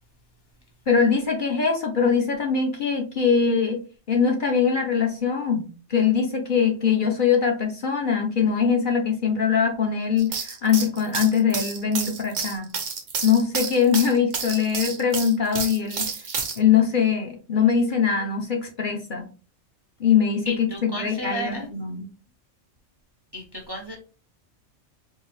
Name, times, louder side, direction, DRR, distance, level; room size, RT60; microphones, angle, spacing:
voice 1, 0.9-3.8 4.1-12.7 13.2-16.1 16.6-19.3 20.0-22.1, left 6 dB, 50° left, 2 dB, 0.7 m, -22 dB
sound 1, 10.2-16.6, right 5 dB, 65° right, 1.1 m, -30 dB
voice 2, 20.5-21.7 23.3-24.0, equal, 30° right, 2 dB, 0.4 m, -33 dB
4.6 x 2.4 x 3.1 m, 0.36 s
omnidirectional pair, 1.3 m